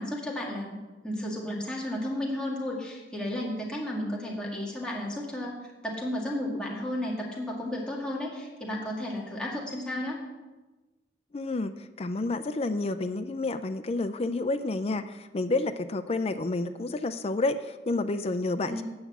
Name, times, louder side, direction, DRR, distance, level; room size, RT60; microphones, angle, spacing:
voice 1, 0.0-10.2 18.7-18.8, left 1 dB, 5° left, -4 dB, 1.9 m, -33 dB
voice 2, 11.3-18.8, left 2 dB, 35° left, 9 dB, 0.4 m, -30 dB
9.5 x 6.0 x 8.0 m, 1.1 s
head